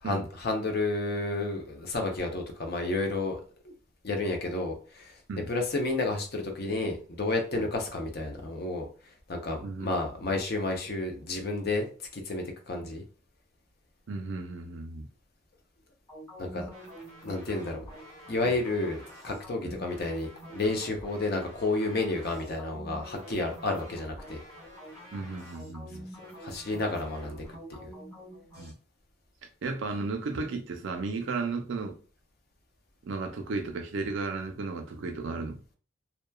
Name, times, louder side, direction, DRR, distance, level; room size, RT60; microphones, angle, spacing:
voice 1, 0.0-3.7 4.0-5.2 5.5-8.9 9.3-11.9 12.1-13.0 16.4-16.7 17.2-17.8 18.3-24.4 26.4-27.4 27.7-27.9, left 2 dB, 50° left, 0.6 m, -31 dB
voice 2, 14.1-15.1 18.4-18.5 19.6-19.7 25.1-26.0 28.6-28.7 29.6-31.9 33.0-35.6, right 3 dB, 65° right, 0.4 m, -34 dB
sound 1, 16.1-28.7, equal, 15° left, 1.2 m, -46 dB
2.9 x 2.2 x 2.2 m
head